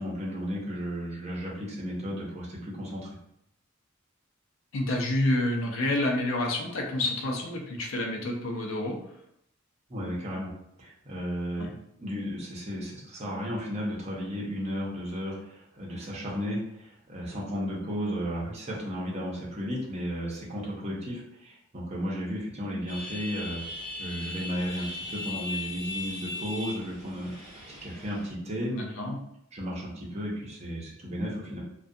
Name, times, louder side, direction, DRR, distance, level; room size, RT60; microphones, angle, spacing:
voice 1, 0.0-3.2 9.9-10.5 10.8-11.7 12.0-23.6 24.0-28.7 29.5-31.6, equal, 35° right, -4 dB, 0.7 m, -34 dB
voice 2, 4.7-9.0 11.6-11.7 28.7-29.2, left 1 dB, 80° left, 1 dB, 0.5 m, -28 dB
sound 1, 22.9-28.3, left 2 dB, 15° left, 1.2 m, -38 dB
2.4 x 2.2 x 2.6 m, 0.75 s
head